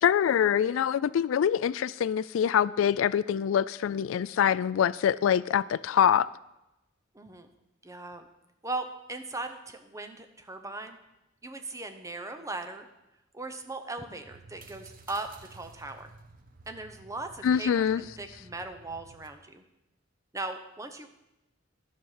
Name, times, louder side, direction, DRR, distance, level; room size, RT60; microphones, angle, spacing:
voice 1, 0.0-6.3 17.4-18.0, left 8 dB, 85° left, 19 dB, 0.3 m, -25 dB
voice 2, 7.1-7.5 7.8-8.3 8.6-11.0 11.4-12.9 13.3-16.1 16.7-19.6 20.3-21.1, right 2 dB, 15° right, 7 dB, 0.8 m, -38 dB
sound 1, 14.2-19.3, right 3 dB, 45° right, 0.9 m, -53 dB
12.0 x 5.6 x 6.5 m, 0.93 s
head